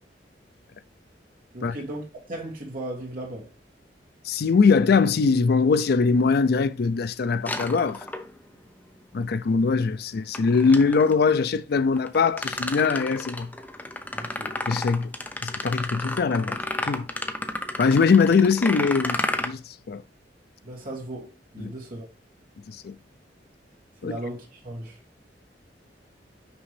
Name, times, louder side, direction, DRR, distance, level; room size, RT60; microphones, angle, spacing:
voice 1, 1.5-3.5 14.1-14.6 20.6-22.1 24.0-25.0, right 1 dB, 50° right, 2.3 m, -36 dB
voice 2, 4.2-8.1 9.1-13.5 14.7-15.1 15.4-16.6 16.8-17.1 17.8-20.0 21.6-21.7 22.7-22.9 24.0-24.2, left 5 dB, 60° left, 0.4 m, -22 dB
sound 1, 7.5-8.5 10.3-11.2 12.0-19.5, left 1 dB, 10° left, 0.6 m, -32 dB
6.0 x 5.2 x 3.3 m
head